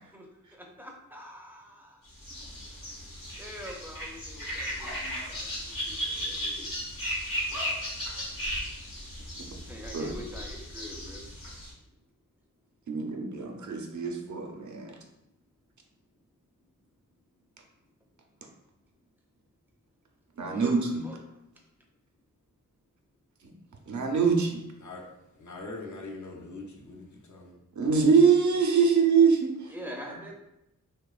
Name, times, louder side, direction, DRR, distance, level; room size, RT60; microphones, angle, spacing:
voice 1, 0.5-2.0 3.4-6.7 9.6-11.2 20.4-21.2 29.7-30.4, equal, 5° right, 0 dB, 0.4 m, -45 dB
sound 1, 2.2-11.7, equal, 85° left, 0.9 m, -36 dB
voice 2, 12.9-15.0 20.4-21.1 23.9-24.6 27.8-29.6, right 5 dB, 60° right, 2 dB, 0.5 m, -24 dB
voice 3, 25.4-27.6, left 2 dB, 60° left, -1 dB, 0.6 m, -42 dB
2.8 x 2.1 x 2.3 m, 0.86 s
wide cardioid pair, 55°, 33 cm